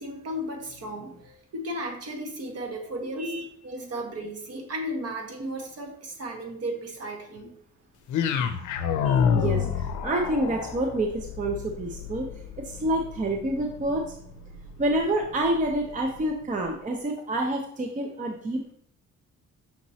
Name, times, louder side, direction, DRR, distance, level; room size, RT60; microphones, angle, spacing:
voice 1, 0.0-7.5, equal, 55° right, 2 dB, 1.1 m, -35 dB
sound 1, 8.1-16.3, left 7 dB, 80° left, 0.5 m, -30 dB
voice 2, 9.0-12.3 12.6-14.2 14.8-18.7, right 1 dB, 25° right, 2 dB, 0.6 m, -28 dB
5.8 x 2.9 x 2.7 m, 0.65 s
cardioid pair, 90°, 30 cm